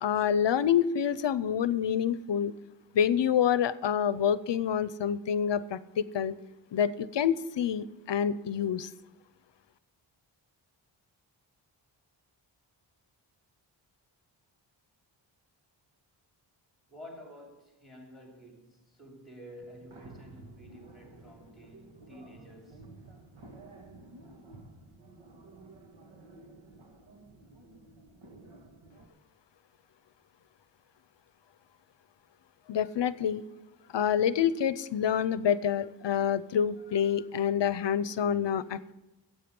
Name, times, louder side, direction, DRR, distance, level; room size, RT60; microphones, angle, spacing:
voice 1, 0.0-2.5 2.9-6.3 6.7-8.9 32.7-33.4 33.9-38.9, left 8 dB, 65° left, 0.7 m, -27 dB
voice 2, 16.9-22.8, equal, ahead, 3.1 m, -50 dB
sound 1, 19.6-29.1, right 2 dB, 70° right, 2.1 m, -52 dB
15.5 x 8.3 x 5.3 m
wide cardioid pair, 145°, 46 cm